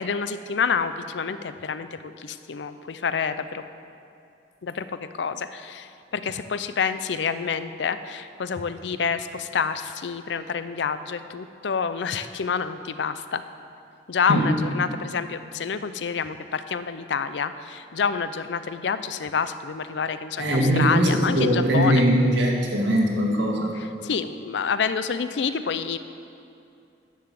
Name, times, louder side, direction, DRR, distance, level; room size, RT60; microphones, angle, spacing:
voice 1, 0.0-3.6 4.6-13.4 14.1-22.0 23.7-26.0, left 6 dB, 80° left, 12 dB, 0.5 m, -28 dB
voice 2, 20.4-23.7, equal, 90° right, -2 dB, 2.0 m, -21 dB
10.0 x 6.9 x 7.6 m, 2.6 s
head